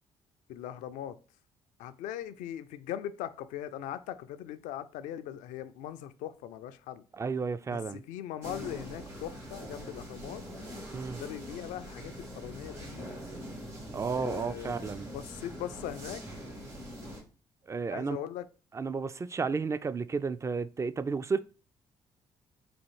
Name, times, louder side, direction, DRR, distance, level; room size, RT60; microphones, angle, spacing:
voice 1, 0.5-1.2 1.8-7.0 7.7-10.4 11.1-13.2 14.1-16.2 17.9-18.5, left 11 dB, 70° left, 0.4 m, -40 dB
voice 2, 7.2-8.0 10.9-11.2 13.9-15.1 17.7-18.2 18.7-21.4, right 5 dB, 20° right, 0.3 m, -32 dB
sound 1, 8.4-17.2, equal, 80° right, 2.2 m, -43 dB
4.2 x 2.4 x 4.6 m
hypercardioid pair, 50°, 13 cm